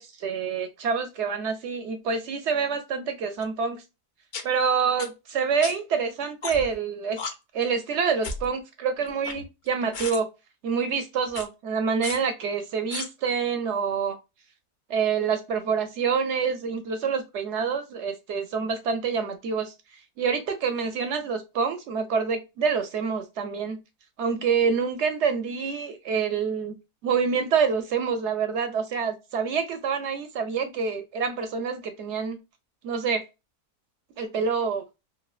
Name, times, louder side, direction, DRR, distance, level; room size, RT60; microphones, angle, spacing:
voice 1, 0.0-3.8 4.4-7.2 7.5-10.3 10.6-14.2 14.9-19.7 20.2-23.8 24.2-26.7 27.0-32.4 32.8-33.2 34.2-34.8, right 6 dB, 70° right, 8 dB, 0.7 m, -27 dB
sound 1, 3.4-3.5 4.3-4.4 5.0-5.1 5.6-5.7 6.4-6.8 7.2-7.3 8.2-8.5 9.0-9.7 9.9-10.2 11.3-11.5 12.0-12.2 12.9-13.1, left 4 dB, 60° left, 0.5 m, -34 dB
3.2 x 2.5 x 2.4 m, 0.25 s
omnidirectional pair, 1.6 m